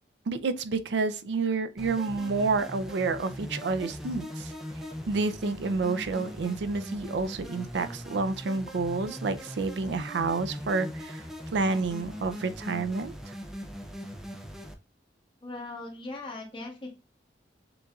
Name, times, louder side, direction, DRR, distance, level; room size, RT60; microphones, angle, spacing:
voice 1, 0.3-4.5 5.1-13.3, right 4 dB, 70° right, 0.4 m, -29 dB
sound 1, 1.8-14.7, equal, ahead, 0.5 m, -40 dB
voice 2, 15.4-16.9, left 2 dB, 25° left, 1.2 m, -39 dB
6.7 x 2.5 x 2.3 m
head